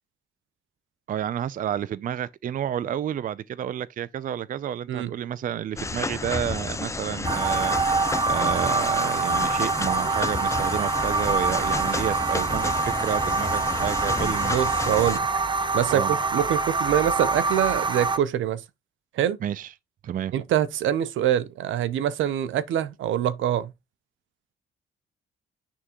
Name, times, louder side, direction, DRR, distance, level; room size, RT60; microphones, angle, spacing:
voice 1, 1.1-7.8 8.2-14.5 15.9-16.1 19.4-19.7 20.0-20.3, right 10 dB, 45° right, 0.4 m, -30 dB
sound 1, 5.8-15.2, left 3 dB, 15° left, 0.5 m, -31 dB
sound 2, 7.2-18.2, right 3 dB, 25° right, 0.8 m, -25 dB
voice 2, 14.5-15.3 15.7-18.6 19.1-19.4 20.3-23.7, right 11 dB, 75° right, 0.8 m, -24 dB
9.8 x 3.7 x 2.9 m
cardioid pair, 90°, 20 cm